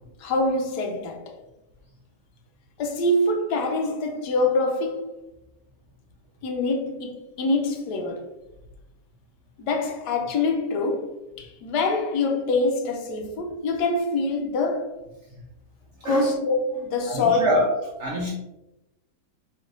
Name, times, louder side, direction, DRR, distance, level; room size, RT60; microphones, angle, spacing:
voice 1, 0.2-1.2 2.8-5.1 6.4-8.2 9.6-14.9 16.0-17.5, left 2 dB, 75° left, 1.2 m, -25 dB
voice 2, 16.0-16.3 17.1-18.3, right 1 dB, 60° right, 0.7 m, -25 dB
4.5 x 3.1 x 2.4 m
omnidirectional pair, 1.9 m